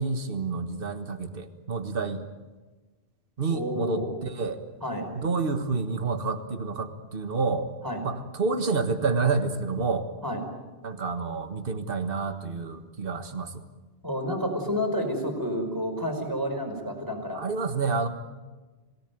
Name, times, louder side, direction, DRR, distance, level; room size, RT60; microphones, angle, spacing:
voice 1, 0.0-2.2 3.4-4.7 5.2-7.7 8.0-10.1 10.8-13.6 17.3-18.1, right 4 dB, 60° right, 7 dB, 1.8 m, -29 dB
voice 2, 3.5-4.1 4.8-5.1 7.8-8.0 10.2-10.4 14.0-17.4, equal, 20° right, 3 dB, 5.1 m, -30 dB
27.0 x 18.0 x 9.3 m, 1.2 s
omnidirectional pair, 1.1 m